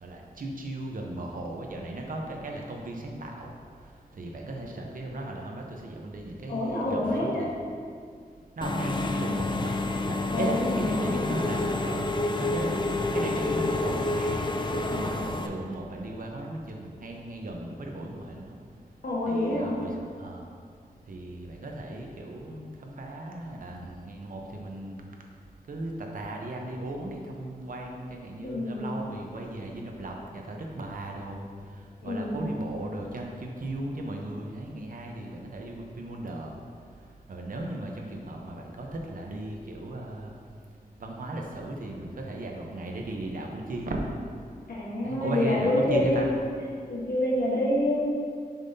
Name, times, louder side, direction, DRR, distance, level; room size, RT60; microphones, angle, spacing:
voice 1, 0.0-3.5 4.2-7.5 8.6-9.7 10.1-12.1 12.4-14.4 14.9-18.6 19.3-20.4 21.1-25.0 25.7-31.5 32.0-36.5 37.3-40.3 41.0-44.0 45.0-46.3, right 1 dB, 60° right, 1 dB, 0.8 m, -36 dB
voice 2, 6.5-7.5 10.3-11.4 15.1-15.6 19.0-19.9 28.4-28.9 32.0-32.6 44.7-46.3 46.9-48.0, left 1 dB, 85° left, -6 dB, 1.4 m, -27 dB
Engine / Mechanisms, 8.6-15.5, left 2 dB, 30° left, 0.4 m, -29 dB
7.1 x 5.5 x 2.7 m, 2.2 s
wide cardioid pair, 115°, 16 cm